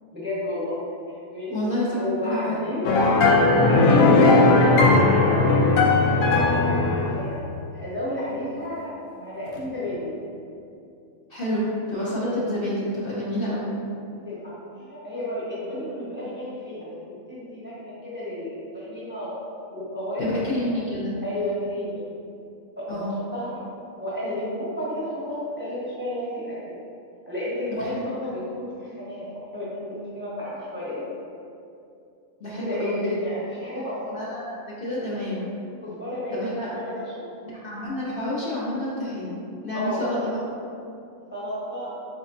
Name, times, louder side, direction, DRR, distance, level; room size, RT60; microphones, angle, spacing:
voice 1, 0.1-0.8 1.1-1.5 1.9-5.4 6.0-7.4 7.7-10.2 14.2-17.0 17.3-19.4 19.7-20.3 20.6-20.9 21.2-22.0 22.8-26.7 27.3-31.0 32.6-34.1 35.8-37.3 39.7-40.1 41.3-41.9, left 1 dB, 10° right, -9 dB, 0.8 m, -32 dB
voice 2, 1.5-2.6 11.3-13.7 20.2-21.1 22.9-23.1 27.8-28.1 32.4-33.2 34.1-35.5 36.3-36.7 37.5-40.4, left 1 dB, 50° left, -9 dB, 0.9 m, -29 dB
sound 1, 2.8-7.2, left 3 dB, 85° left, 1.0 m, -17 dB
4.3 x 4.1 x 2.6 m, 2.5 s
omnidirectional pair, 1.4 m